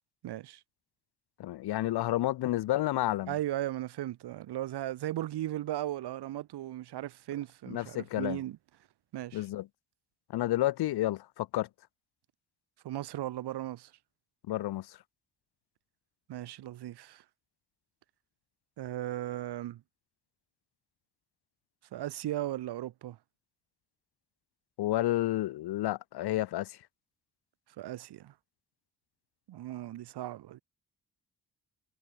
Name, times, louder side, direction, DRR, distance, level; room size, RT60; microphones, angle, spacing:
voice 1, 0.2-0.6 3.3-8.6 9.1-9.4 12.8-13.9 16.3-17.2 18.8-19.8 21.9-23.2 27.8-28.3 29.5-30.6, right 13 dB, 85° right, 0.9 m, -37 dB
voice 2, 1.4-3.4 7.7-8.4 9.3-9.7 10.3-11.7 14.5-15.0 24.8-26.8, left 15 dB, 75° left, 0.6 m, -30 dB
cardioid pair, 105°, 39 cm